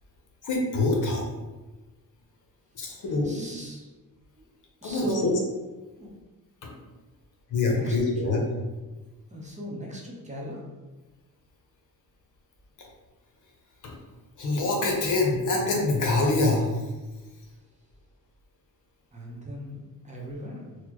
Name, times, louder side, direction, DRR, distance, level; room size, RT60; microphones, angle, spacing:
voice 1, 0.4-1.3 2.7-3.4 4.8-5.3 6.6-6.7 7.5-8.4 13.8-13.9 14.4-16.7, left 2 dB, 60° left, 0 dB, 0.8 m, -25 dB
voice 2, 2.9-3.9 4.4-4.5 4.8-5.4 6.0-6.1 7.6-8.3 9.3-10.6 19.1-20.8, equal, 20° right, -3 dB, 0.8 m, -37 dB
4.1 x 2.2 x 2.9 m, 1.2 s
cardioid pair, 105°, 35 cm